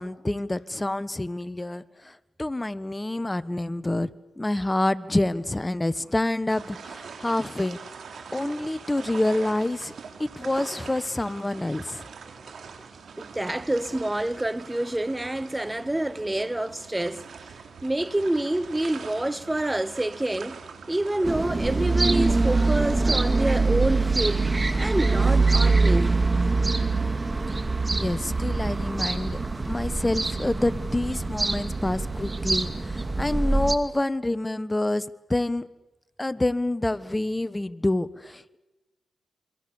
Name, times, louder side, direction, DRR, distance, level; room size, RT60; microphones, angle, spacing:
voice 1, 0.0-7.8 8.3-9.9 10.2-12.1 27.9-29.4 29.7-35.6 36.2-38.6, left 1 dB, 20° left, 1.2 m, -27 dB
sound 1, 6.5-23.0, right 5 dB, 75° right, 3.5 m, -43 dB
voice 2, 13.2-17.6 17.8-20.6 20.9-24.5 24.8-26.3, right 1 dB, 15° right, 0.9 m, -27 dB
sound 2, 21.2-33.8, right 3 dB, 35° right, 2.3 m, -24 dB
28.5 x 24.5 x 7.1 m
cardioid pair, 55°, 0 cm